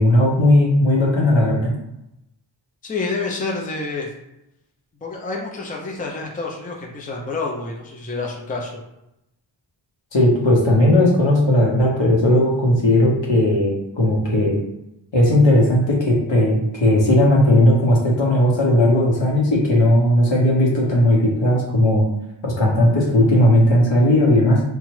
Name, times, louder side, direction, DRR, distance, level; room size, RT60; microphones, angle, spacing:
voice 1, 0.0-1.7 10.1-14.6 15.1-22.1 22.4-24.6, left 1 dB, 65° left, -3 dB, 1.0 m, -16 dB
voice 2, 2.8-4.1 5.0-8.8, left 3 dB, 20° left, -1 dB, 0.5 m, -28 dB
3.0 x 2.3 x 3.1 m, 0.86 s
wide cardioid pair, 70°, 47 cm